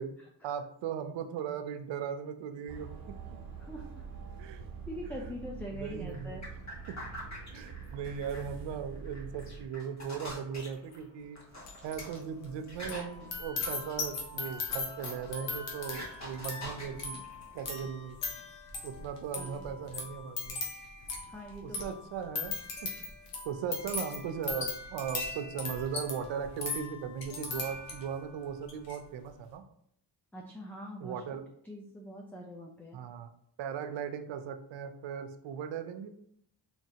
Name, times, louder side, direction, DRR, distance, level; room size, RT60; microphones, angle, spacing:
voice 1, 0.4-3.2 4.4-4.6 5.1-5.2 5.7-6.5 6.9-7.0 7.5-11.4 11.8-17.2 17.5-18.2 18.8-20.6 21.6-22.5 22.8-22.9 23.4-29.6 31.0-31.4 32.9-33.3 33.6-36.1, right 7 dB, 90° right, 8 dB, 0.6 m, -38 dB
sound 1, 2.7-9.7, right 5 dB, 50° right, 0.9 m, -45 dB
voice 2, 3.6-4.0 4.9-6.4 19.4-19.7 21.0-22.0 30.3-31.2 31.6-33.0, equal, 5° left, 0 dB, 0.4 m, -43 dB
sound 2, 6.1-17.6, left 1 dB, 40° left, 1.4 m, -47 dB
sound 3, 11.6-12.2 12.4-28.2 28.6-29.0, left 4 dB, 80° left, 1.1 m, -39 dB
4.5 x 2.9 x 2.8 m, 0.69 s
cardioid pair, 100°, 43 cm